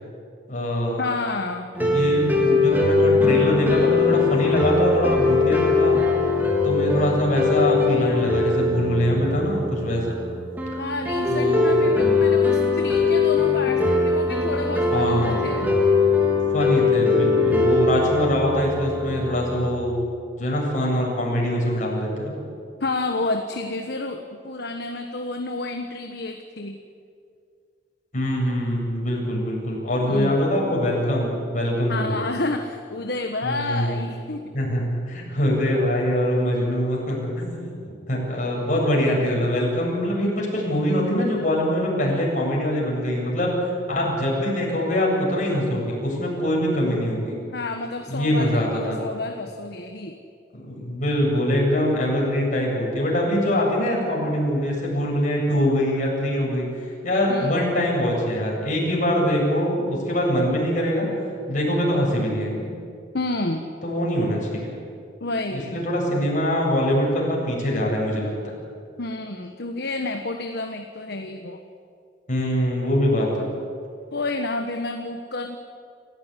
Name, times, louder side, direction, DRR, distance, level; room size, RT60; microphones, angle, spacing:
voice 1, 0.5-1.0 1.8-6.0 6.6-10.2 11.3-12.0 14.9-15.4 16.5-20.0 20.4-22.4 28.1-32.1 33.4-34.0 34.5-37.7 38.1-43.6 43.9-47.3 48.1-49.0 50.5-56.7 57.0-61.1 61.5-62.7 63.8-64.7 65.5-68.5 72.3-73.4, equal, 45° left, -2 dB, 7.9 m, -23 dB
voice 2, 1.0-1.7 10.8-15.7 22.8-26.8 30.0-30.4 31.9-34.5 38.4-38.6 47.5-50.2 57.3-57.6 63.1-63.7 65.2-65.8 69.0-71.6 74.1-75.6, left 2 dB, 60° left, 5 dB, 1.4 m, -30 dB
sound 1, 1.7-19.8, left 3 dB, 10° right, 4.0 m, -21 dB
28.0 x 16.0 x 10.0 m, 2.3 s
head